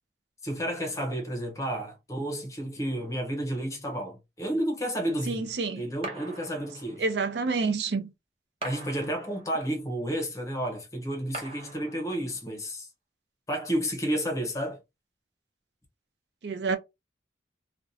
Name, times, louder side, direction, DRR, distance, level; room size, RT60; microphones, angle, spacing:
voice 1, 0.4-5.5 5.8-7.0 8.6-12.9 13.5-14.8, right 1 dB, 20° left, 0.6 m, -31 dB
voice 2, 5.3-5.9 7.0-8.1 16.4-16.8, right 4 dB, 80° right, 0.5 m, -28 dB
sound 1, 6.0-7.2 8.6-9.7 11.3-12.4, right 2 dB, 35° right, 0.7 m, -41 dB
2.5 x 2.1 x 2.6 m
head